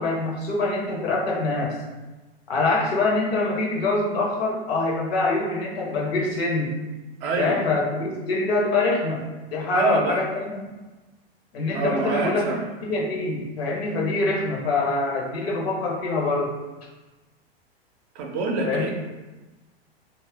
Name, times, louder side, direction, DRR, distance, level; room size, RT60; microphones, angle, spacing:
voice 1, 0.0-1.8 2.5-6.8 7.4-9.2 9.5-10.5 11.5-12.5 12.8-16.5 18.6-18.9, left 3 dB, 70° left, -1 dB, 0.9 m, -24 dB
voice 2, 7.2-7.6 9.7-10.2 11.7-12.7 18.1-18.9, right 3 dB, 45° right, 1 dB, 0.5 m, -26 dB
2.4 x 2.1 x 3.3 m, 1.2 s
hypercardioid pair, 100°, 31 cm